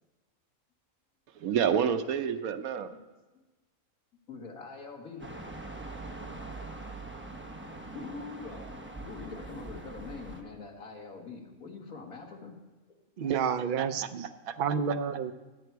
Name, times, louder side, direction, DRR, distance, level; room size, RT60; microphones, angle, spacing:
voice 1, 1.4-2.9 13.3-13.5 13.8-14.6, right 8 dB, 90° right, 9 dB, 1.2 m, -30 dB
voice 2, 4.3-5.3 7.8-12.6, left 4 dB, 90° left, 1 dB, 2.0 m, -44 dB
sound 1, 5.2-10.4, right 2 dB, 10° right, 0.9 m, -42 dB
voice 3, 13.2-14.3 14.6-15.3, right 7 dB, 55° right, 10 dB, 0.6 m, -30 dB
16.5 x 9.4 x 4.6 m, 1.2 s
omnidirectional pair, 1.4 m